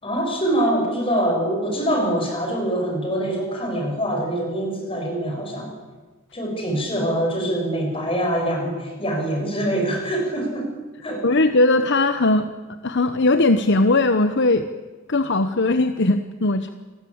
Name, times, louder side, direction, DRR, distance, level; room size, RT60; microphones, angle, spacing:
voice 1, 0.0-5.7 6.3-10.7 11.0-11.4, right 1 dB, 25° left, 2 dB, 7.3 m, -24 dB
voice 2, 11.2-12.5 12.8-14.7 15.1-16.7, left 2 dB, 55° left, 10 dB, 1.0 m, -19 dB
28.5 x 20.5 x 8.7 m, 1.3 s
head